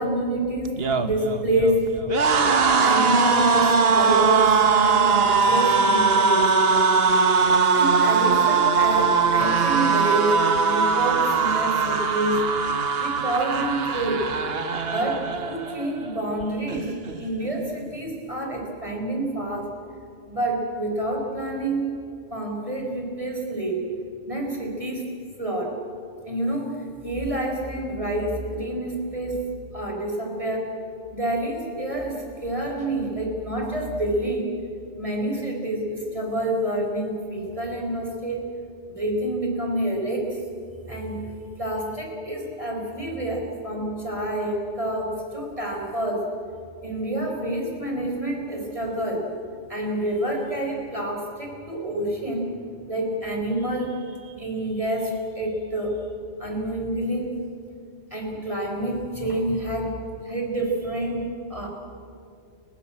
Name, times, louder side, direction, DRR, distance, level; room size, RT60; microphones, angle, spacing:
voice 1, 0.0-1.9 2.8-6.9 7.7-12.4 13.0-14.3 14.9-19.7 20.3-21.8 22.3-23.9 24.3-25.1 25.4-25.7 26.2-26.7 27.0-29.4 29.7-30.7 31.1-34.5 35.0-38.5 38.9-40.4 40.9-41.3 41.6-46.2 46.8-49.3 49.7-52.5 52.9-55.9 56.4-57.4 58.1-61.7, right 1 dB, 25° right, 0 dB, 4.6 m, -28 dB
sound 1, 0.7-15.9 16.2-16.4 16.7-17.5, right 5 dB, 55° right, 1.4 m, -21 dB
29.5 x 17.0 x 8.8 m, 2.5 s
omnidirectional pair, 1.2 m